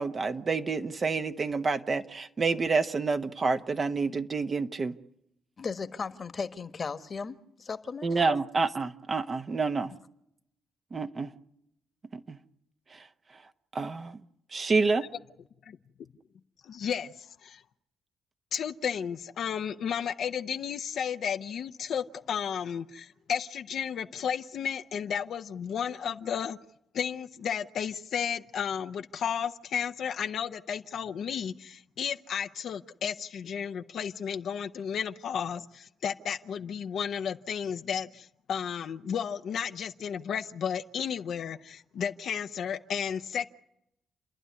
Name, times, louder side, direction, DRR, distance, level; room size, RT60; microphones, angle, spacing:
voice 1, 0.0-4.9 8.0-9.9 10.9-11.3 12.3-12.4 12.9-13.0 13.7-14.2 14.5-15.1, right 4 dB, 45° right, 1.0 m, -28 dB
voice 2, 5.6-8.1, left 5 dB, 45° left, 1.4 m, -36 dB
voice 3, 16.6-17.6 18.5-26.6 26.9-43.5, left 8 dB, 70° left, 0.7 m, -33 dB
29.5 x 11.0 x 9.6 m
supercardioid pair, 55°, 0 cm